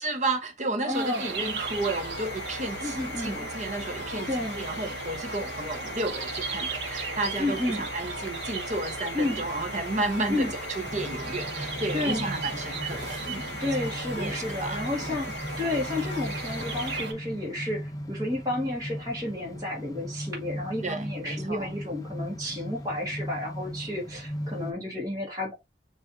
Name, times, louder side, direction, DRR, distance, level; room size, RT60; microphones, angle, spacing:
voice 1, 0.0-15.1 20.8-21.7, right 2 dB, 40° right, 0.9 m, -32 dB
voice 2, 0.8-1.3 2.8-3.5 4.3-4.6 7.4-7.8 9.1-9.5 10.3-10.5 11.9-12.3 13.6-25.5, left 2 dB, 20° right, 1.3 m, -31 dB
sound 1, 0.9-17.1, right 4 dB, 75° right, 1.0 m, -36 dB
sound 2, 1.1-17.7, left 5 dB, 60° left, 0.6 m, -41 dB
sound 3, 10.8-24.7, equal, 20° left, 0.5 m, -38 dB
6.8 x 2.5 x 2.6 m
head